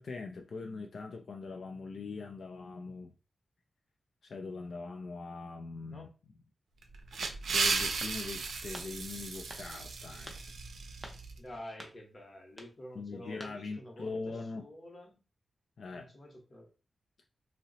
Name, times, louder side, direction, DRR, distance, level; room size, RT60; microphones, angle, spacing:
voice 1, 0.0-3.1 4.2-6.1 7.5-10.4 12.9-14.7 15.8-16.1, left 4 dB, 70° left, 2 dB, 0.4 m, -42 dB
sound 1, 6.8-11.3, right 4 dB, 85° right, 0.4 m, -35 dB
sound 2, 7.2-7.6 8.0-8.2 8.7-8.9 9.5-9.7 10.3-10.4 11.0-11.2 11.8-12.0 12.5-12.7 13.4-13.6, equal, 5° right, 0.6 m, -47 dB
voice 2, 11.4-15.2 15.9-16.7, left 1 dB, 30° left, 1 dB, 0.9 m, -49 dB
2.8 x 2.0 x 3.9 m, 0.33 s
wide cardioid pair, 145°, 0 cm